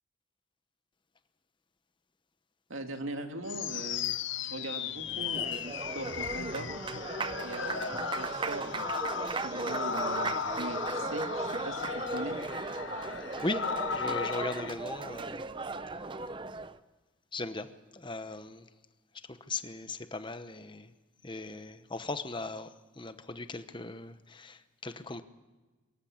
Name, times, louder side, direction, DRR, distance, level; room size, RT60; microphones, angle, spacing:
voice 1, 2.7-4.1 4.4-7.0 7.4-8.9 9.3-12.4, right 2 dB, 75° right, 5 dB, 2.3 m, -40 dB
sound 1, 3.5-14.7, left 7 dB, 65° left, 0.8 m, -36 dB
Applause, 4.9-16.8, right 3 dB, 25° right, 0.6 m, -37 dB
voice 2, 13.9-15.4 17.3-18.6 19.5-20.9 21.2-22.7 23.0-25.2, left 2 dB, 25° left, 10 dB, 1.0 m, -38 dB
24.0 x 14.0 x 8.6 m, 1.2 s
head